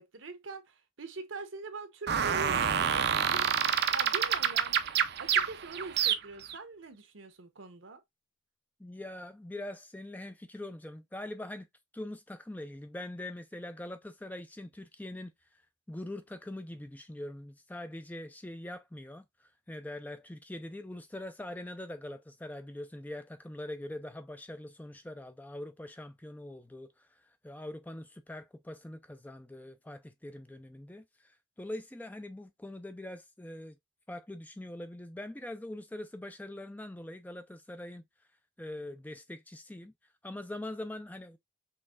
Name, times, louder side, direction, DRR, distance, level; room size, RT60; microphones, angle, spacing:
voice 1, 0.0-4.8 5.2-8.0, right 3 dB, 70° right, 0.9 m, -43 dB
sound 1, 2.1-6.5, right 8 dB, 55° right, 0.5 m, -28 dB
voice 2, 8.8-11.7 11.9-15.6 15.9-33.8 34.1-38.0 38.6-39.9 40.2-41.4, left 1 dB, 10° left, 0.4 m, -43 dB
5.5 x 3.1 x 2.4 m
head